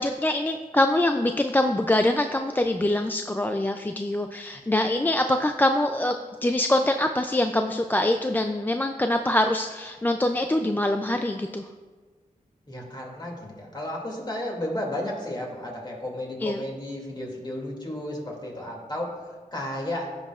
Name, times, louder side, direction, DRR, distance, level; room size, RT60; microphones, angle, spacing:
voice 1, 0.0-6.2 6.4-11.7 16.4-16.7, left 1 dB, 15° left, 5 dB, 0.3 m, -24 dB
voice 2, 12.7-19.2 19.5-20.1, left 1 dB, 30° left, -2 dB, 2.4 m, -33 dB
14.5 x 6.1 x 2.4 m, 1.4 s
wide cardioid pair, 75°, 15 cm